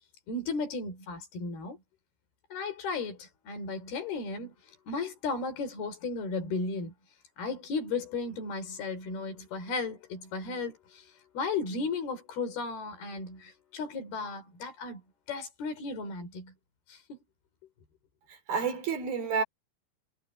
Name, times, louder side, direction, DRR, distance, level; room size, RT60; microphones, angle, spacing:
voice 1, 0.3-1.8 2.5-4.5 4.9-6.9 7.4-15.0 15.3-16.5 16.9-17.2, left 4 dB, 85° left, 5.8 m, -35 dB
voice 2, 18.3-19.4, right 6 dB, 75° right, 5.8 m, -30 dB
omnidirectional pair, 4.3 m